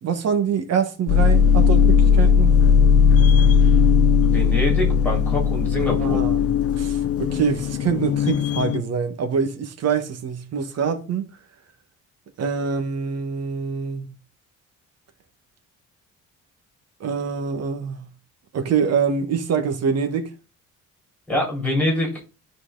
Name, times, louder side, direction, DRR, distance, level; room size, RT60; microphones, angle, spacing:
voice 1, 0.0-2.6 6.0-6.5 6.8-11.3 12.4-14.1 17.0-18.0 18.5-20.3, right 6 dB, 50° right, 1.4 m, -25 dB
sound 1, 1.1-8.8, left 6 dB, 50° left, 0.7 m, -17 dB
voice 2, 4.2-6.2 21.3-22.2, left 1 dB, 5° left, 3.9 m, -24 dB
13.0 x 4.6 x 3.8 m
cardioid pair, 170°, 31 cm